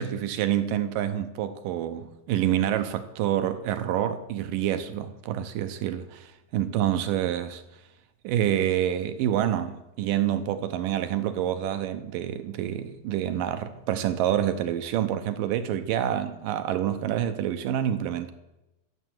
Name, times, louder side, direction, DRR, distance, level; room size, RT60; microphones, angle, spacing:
voice 1, 0.0-7.6 8.2-18.3, right 11 dB, 80° right, 2.3 m, -27 dB
14.0 x 7.3 x 7.5 m
omnidirectional pair, 4.2 m